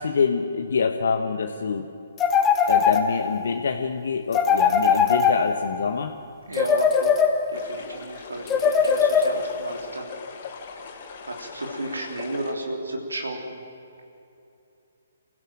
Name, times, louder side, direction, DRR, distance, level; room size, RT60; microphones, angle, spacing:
voice 1, 0.0-1.9 2.6-6.2, left 5 dB, 60° left, 5 dB, 1.3 m, -25 dB
sound 1, 2.2-3.5 4.3-5.8 6.5-7.7 8.5-9.7, left 6 dB, 15° left, 1.6 m, -21 dB
voice 2, 6.5-10.1 11.2-13.6, right 1 dB, 75° right, 2 dB, 3.5 m, -33 dB
sound 2, 7.5-12.5, left 5 dB, 45° left, 3.6 m, -40 dB
27.0 x 16.0 x 7.6 m, 2.7 s
figure-of-eight pair, 130°, 0 cm